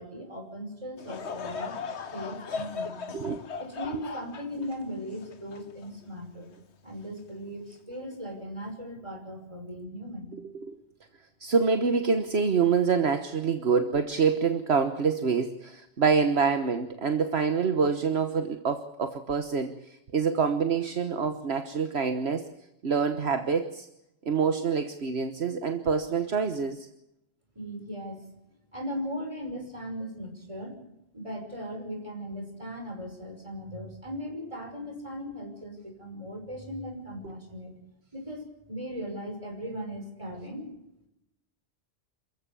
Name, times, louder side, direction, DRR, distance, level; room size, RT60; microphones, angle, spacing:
voice 1, 0.0-1.8 2.1-6.5 6.8-10.3 27.5-28.2 28.7-30.7 31.1-37.7 38.1-40.7, equal, 25° right, 3 dB, 5.8 m, -38 dB
Laughter / Crowd, 1.0-6.4 7.0-7.1 7.9-8.2, left 5 dB, 70° left, 1.4 m, -38 dB
voice 2, 11.4-22.5 22.8-23.9 24.2-26.9 37.2-37.3, right 5 dB, 65° right, 7 dB, 1.5 m, -26 dB
27.5 x 15.0 x 7.0 m, 0.86 s
omnidirectional pair, 1.2 m